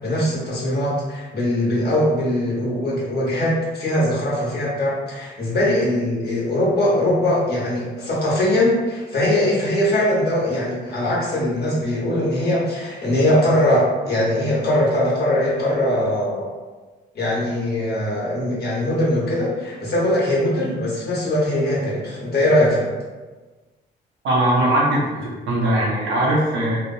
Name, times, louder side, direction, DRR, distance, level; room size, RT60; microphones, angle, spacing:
voice 1, 0.0-16.5 17.1-22.9, left 1 dB, 50° left, -6 dB, 1.1 m, -21 dB
voice 2, 24.2-26.8, right 1 dB, 75° right, -5 dB, 0.6 m, -20 dB
2.8 x 2.0 x 2.6 m, 1.3 s
cardioid pair, 75°, 21 cm